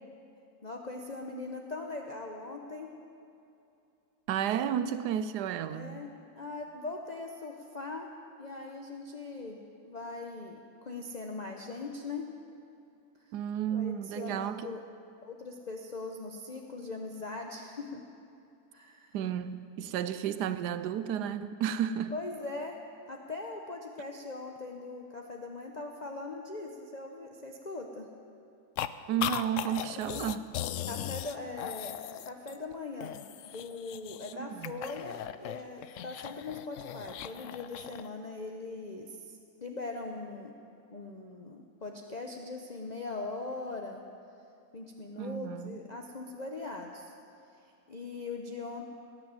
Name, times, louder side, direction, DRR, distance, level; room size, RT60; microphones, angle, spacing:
voice 1, 0.6-2.9 5.7-8.1 8.4-12.3 13.7-14.8 15.2-18.0 18.7-19.2 22.1-22.8 23.1-28.1 30.0-30.3 30.9-32.0 32.2-40.5 40.9-44.0 44.7-47.1 47.9-48.8, left 3 dB, 30° left, 1 dB, 0.9 m, -41 dB
voice 2, 4.3-6.0 13.3-14.7 19.1-22.1 29.1-30.5 34.3-34.8 45.2-45.8, right 9 dB, 90° right, 12 dB, 1.2 m, -32 dB
sound 1, 28.8-28.9 29.2-32.7 33.0-34.3 34.6-38.1, left 11 dB, 70° left, 0.8 m, -38 dB
18.5 x 9.6 x 7.6 m, 2.7 s
omnidirectional pair, 1.7 m